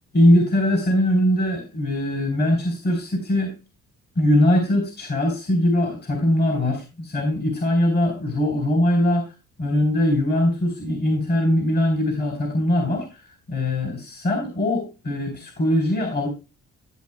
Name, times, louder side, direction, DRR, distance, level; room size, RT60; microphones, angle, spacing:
voice 1, 0.1-3.5 4.2-9.3 9.6-16.3, left 1 dB, 35° left, 4 dB, 3.6 m, -21 dB
14.0 x 8.0 x 2.2 m, 0.30 s
cardioid pair, 90°, 30 cm